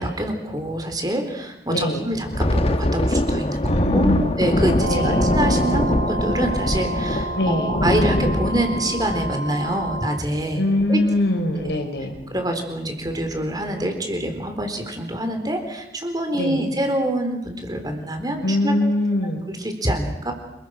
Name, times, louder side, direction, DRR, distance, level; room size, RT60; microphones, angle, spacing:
voice 1, 0.0-10.6 10.9-11.0 11.6-11.8 12.3-18.7 19.5-20.3, right 1 dB, 20° right, 5 dB, 4.0 m, -26 dB
voice 2, 1.7-2.1 3.7-4.3 4.9-5.3 7.3-7.8 10.5-12.1 16.3-16.7 18.4-19.4, left 1 dB, 75° left, 5 dB, 4.5 m, -23 dB
Thunder, 2.1-11.2 11.5-11.8 12.1-12.4 13.0-13.5, left 1 dB, 35° left, 1.2 m, -23 dB
sound 1, 4.8-10.2, right 2 dB, 65° right, 2.3 m, -30 dB
28.5 x 22.0 x 6.4 m, 0.92 s
head